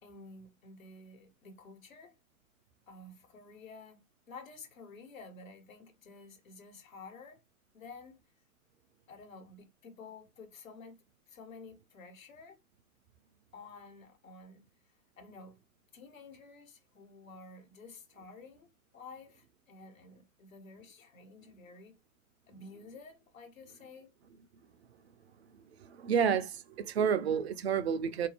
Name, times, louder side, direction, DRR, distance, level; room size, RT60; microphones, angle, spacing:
voice 1, 0.0-2.2 2.9-4.0 4.3-7.4 7.7-8.2 9.1-11.0 11.3-12.6 13.5-14.6 15.2-15.6 15.9-18.7 18.9-22.0 22.5-24.1, left 3 dB, 65° left, 1.2 m, -51 dB
voice 2, 25.8-28.3, right 7 dB, 50° right, 0.4 m, -30 dB
3.9 x 2.6 x 2.8 m
figure-of-eight pair, 100°, 43 cm